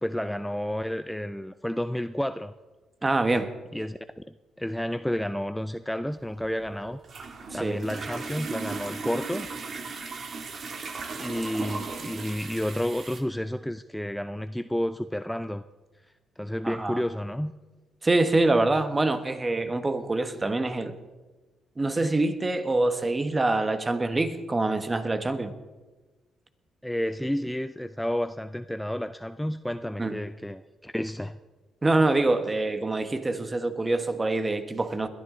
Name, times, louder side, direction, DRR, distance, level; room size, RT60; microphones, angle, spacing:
voice 1, 0.0-2.5 3.7-4.0 4.6-7.0 7.5-9.5 11.2-15.6 16.4-17.5 26.8-31.3, equal, 5° left, 11 dB, 0.4 m, -31 dB
voice 2, 3.0-3.5 7.5-7.8 16.6-17.0 18.0-20.9 21.8-25.5 30.0-30.2 31.8-35.1, right 2 dB, 20° right, 9 dB, 1.3 m, -25 dB
sound 1, 6.2-13.2, right 4 dB, 50° right, 1.7 m, -37 dB
21.0 x 12.5 x 3.8 m, 1.2 s
cardioid pair, 90°, 0 cm